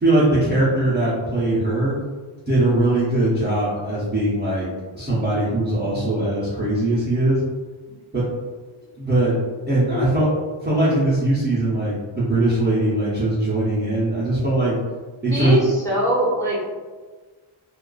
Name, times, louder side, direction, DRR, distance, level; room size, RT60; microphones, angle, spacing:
voice 1, 0.0-1.9 2.5-4.7 4.9-7.4 8.1-8.2 9.0-9.4 9.7-10.3 10.6-14.8 15.2-15.6, right 1 dB, 20° right, -10 dB, 0.6 m, -20 dB
voice 2, 15.3-16.8, equal, 5° left, -8 dB, 0.9 m, -22 dB
2.4 x 2.3 x 2.3 m, 1.4 s
wide cardioid pair, 85°, 49 cm